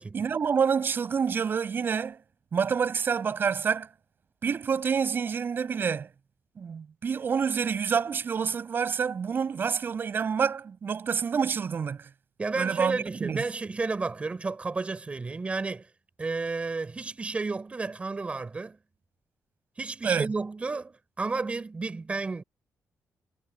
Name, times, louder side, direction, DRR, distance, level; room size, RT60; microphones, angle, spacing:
voice 1, 0.1-2.2 2.5-3.9 4.4-6.1 6.6-12.0 12.6-13.4 20.0-20.3, right 6 dB, 40° right, 6.1 m, -27 dB
voice 2, 12.4-15.9 16.2-18.8 19.8-22.4, right 3 dB, 25° right, 5.4 m, -32 dB
cardioid pair, 145°, 5 cm